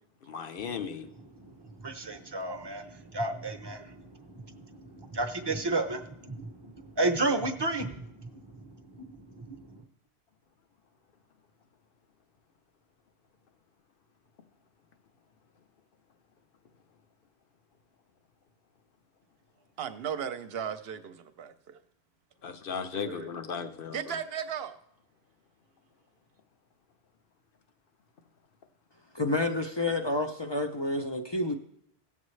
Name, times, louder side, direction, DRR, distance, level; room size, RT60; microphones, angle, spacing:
voice 1, 0.3-1.1 22.4-24.2, left 6 dB, 60° left, 0.9 m, -36 dB
voice 2, 1.4-9.8, right 2 dB, 25° right, 0.8 m, -33 dB
voice 3, 19.8-21.8 22.9-23.3 23.9-24.8, right 8 dB, 65° right, 0.9 m, -36 dB
voice 4, 29.1-31.5, left 2 dB, 30° left, 0.5 m, -29 dB
17.5 x 7.3 x 3.2 m
omnidirectional pair, 1.1 m